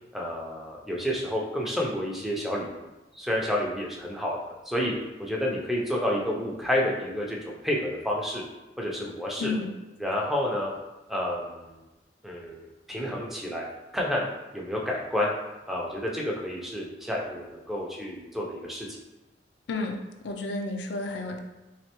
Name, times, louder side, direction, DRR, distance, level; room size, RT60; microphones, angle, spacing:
voice 1, 0.1-2.9 3.1-4.4 4.7-4.9 5.2-8.4 8.8-9.5 10.0-10.7 11.1-11.8 12.2-13.7 13.9-14.3 14.5-15.3 15.7-18.9, left 1 dB, ahead, -3 dB, 0.5 m, -30 dB
voice 2, 9.4-9.8 19.7-20.0 20.2-21.4, left 3 dB, 70° left, 3 dB, 0.4 m, -31 dB
3.6 x 3.2 x 2.9 m, 1.1 s
head